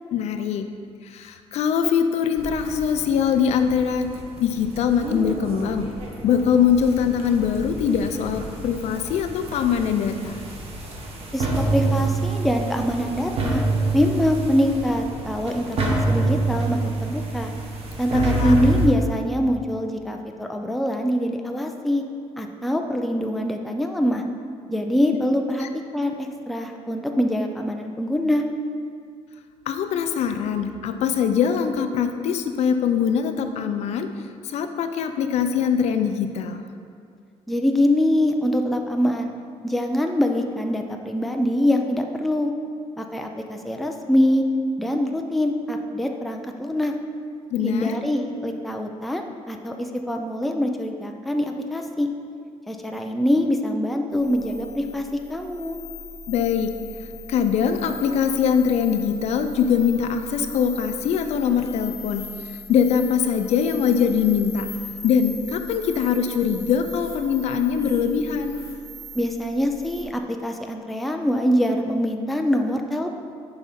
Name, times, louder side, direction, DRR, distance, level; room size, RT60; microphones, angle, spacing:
voice 1, 0.1-0.7 1.0-4.1 4.4-5.9 6.2-10.4 18.1-18.5 25.6-25.7 29.7-34.1 34.5-36.6 47.5-47.9 56.3-56.7 57.3-62.3 62.7-64.7 65.0-68.6, left 7 dB, 65° left, 7 dB, 0.5 m, -22 dB
sound 1, 2.4-18.9, right 2 dB, 55° right, 1.0 m, -27 dB
voice 2, 11.3-13.6 13.9-17.5 18.0-22.0 22.4-24.2 24.7-25.7 25.9-28.4 37.5-39.3 39.6-42.5 43.0-44.5 44.8-46.9 47.6-52.1 52.7-55.8 69.1-73.1, left 1 dB, ahead, 3 dB, 0.3 m, -24 dB
sound 2, 54.1-70.0, left 3 dB, 30° left, 1.1 m, -39 dB
6.9 x 4.9 x 4.2 m, 2.2 s
cardioid pair, 160°, 12 cm